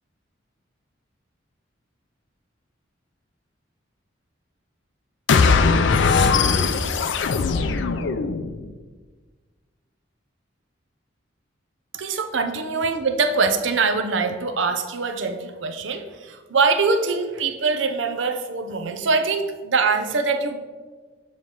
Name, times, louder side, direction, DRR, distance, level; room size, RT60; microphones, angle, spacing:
sound 1, 5.3-8.7, left 4 dB, 70° left, 0.4 m, -19 dB
voice 1, 11.9-20.6, right 4 dB, 75° right, 7 dB, 0.7 m, -23 dB
7.1 x 3.1 x 5.7 m, 1.4 s
head